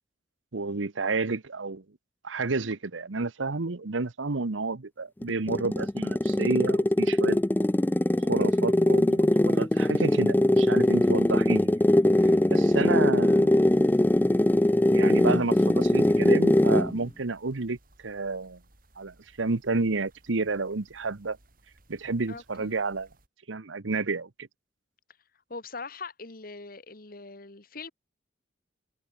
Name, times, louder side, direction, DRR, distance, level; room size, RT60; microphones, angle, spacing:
voice 1, 0.5-1.8 2.2-7.4 8.2-11.7 12.2-13.7 14.9-17.8 18.0-18.6 19.0-21.4 21.9-23.1 23.5-24.5, right 3 dB, 85° right, 1.0 m, -30 dB
sound 1, 5.2-17.0, left 1 dB, 10° left, 0.4 m, -22 dB
sound 2, 13.7-23.3, right 1 dB, 50° right, 6.3 m, -61 dB
voice 2, 22.3-22.8 25.5-27.9, left 4 dB, 50° left, 1.7 m, -41 dB
head